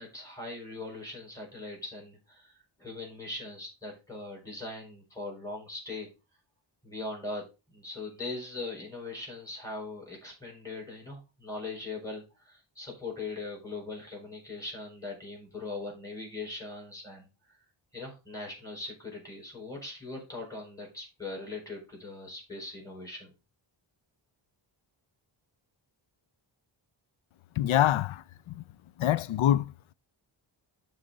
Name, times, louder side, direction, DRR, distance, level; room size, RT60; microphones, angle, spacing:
voice 1, 0.0-2.5 2.8-6.1 6.8-17.3 17.9-23.3, left 3 dB, 5° left, 4.6 m, -40 dB
voice 2, 27.6-28.2 29.0-29.7, left 12 dB, 75° left, 0.5 m, -24 dB
12.0 x 4.1 x 3.9 m
wide cardioid pair, 135°, 48 cm